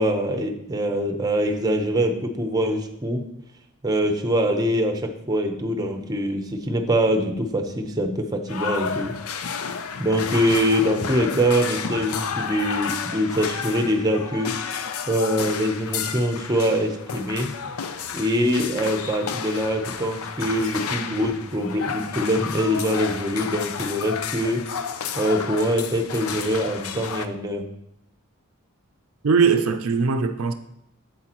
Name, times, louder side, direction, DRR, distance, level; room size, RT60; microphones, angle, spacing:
voice 1, 0.0-3.2 3.8-9.5 10.0-14.5 15.1-17.5 18.1-24.6 25.2-27.7, equal, 15° right, 0.7 m, -24 dB
sound 1, 8.5-27.3, left 6 dB, 75° left, 0.5 m, -31 dB
voice 2, 29.2-30.5, right 5 dB, 75° right, 0.5 m, -20 dB
8.1 x 8.0 x 3.0 m
head